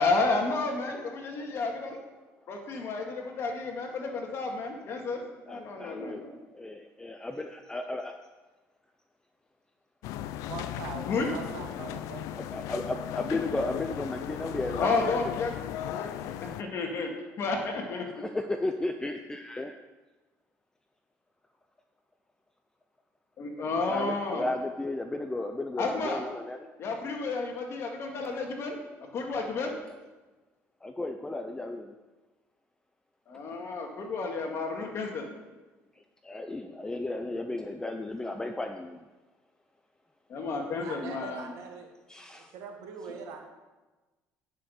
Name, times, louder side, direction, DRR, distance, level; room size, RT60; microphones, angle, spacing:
voice 1, 0.0-2.0 2.5-6.4 11.1-11.3 14.8-15.5 15.9-17.1 17.4-18.2 23.4-24.4 25.8-26.2 26.8-28.8 29.1-29.7 33.3-35.3 40.3-41.5, left 3 dB, 50° left, 2 dB, 2.0 m, -31 dB
voice 2, 1.2-1.8 3.9-4.2 4.6-4.7 5.5-6.2 6.5-8.1 12.4-15.3 18.1-19.8 23.9-26.7 30.8-31.9 36.2-39.1 42.1-42.5, left 2 dB, 10° left, 6 dB, 0.6 m, -34 dB
sound 1, 10.0-16.6, left 12 dB, 80° left, 0.5 m, -37 dB
voice 3, 10.5-12.4 40.8-41.9 42.3-43.5, right 6 dB, 75° right, 3 dB, 1.8 m, -42 dB
9.3 x 6.1 x 6.6 m, 1.2 s
cardioid pair, 110°, 6 cm